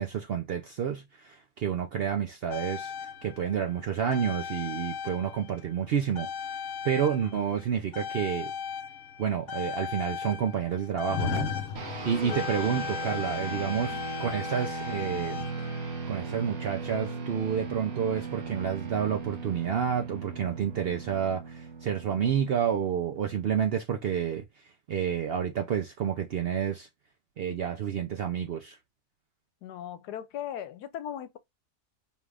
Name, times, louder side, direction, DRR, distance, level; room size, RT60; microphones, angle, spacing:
voice 1, 0.0-6.3 6.8-8.5 9.2-11.5 12.0-15.5 16.1-24.4 24.9-26.9 27.4-28.8, right 8 dB, 75° right, 0.5 m, -29 dB
sound 1, 2.5-5.8 6.2-16.2 17.2-17.3, left 7 dB, 55° left, 1.0 m, -36 dB
sound 2, 11.8-23.4, right 4 dB, 60° right, 1.4 m, -38 dB
voice 2, 13.7-14.0 29.6-31.4, left 10 dB, 75° left, 1.2 m, -38 dB
5.1 x 2.4 x 3.3 m
omnidirectional pair, 1.8 m